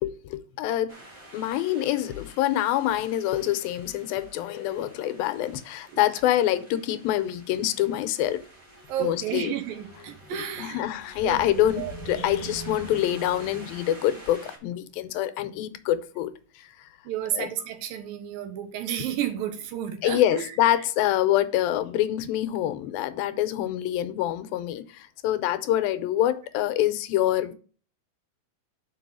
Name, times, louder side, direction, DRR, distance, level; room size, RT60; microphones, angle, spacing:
voice 1, 0.0-1.0 1.3-8.4 9.0-9.5 10.3-16.9 17.3-17.5 20.0-27.5, left 12 dB, 80° left, 2.4 m, -26 dB
sound 1, 0.9-14.6, right 2 dB, 30° right, 2.3 m, -45 dB
voice 2, 8.9-10.8 11.2-11.9 12.4-12.5 17.1-20.9 23.2-23.4, right 10 dB, 80° right, 2.6 m, -32 dB
5.7 x 5.3 x 6.2 m
omnidirectional pair, 4.2 m